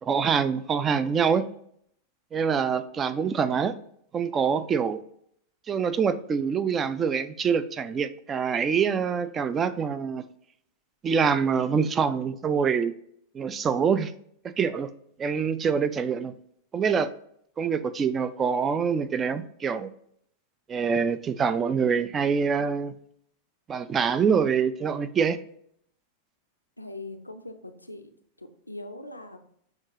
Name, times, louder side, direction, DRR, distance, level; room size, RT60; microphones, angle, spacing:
voice 1, 0.0-1.5 2.3-3.8 4.1-5.0 5.7-10.3 11.0-12.9 13.3-14.1 14.4-14.9 15.2-16.3 16.7-17.1 17.6-19.9 20.7-22.9 23.7-25.4, right 6 dB, 25° right, 0.3 m, -25 dB
voice 2, 26.8-28.1 28.4-29.4, left 2 dB, 85° left, 0.4 m, -41 dB
6.4 x 2.8 x 2.8 m
figure-of-eight pair, 90°, 0 cm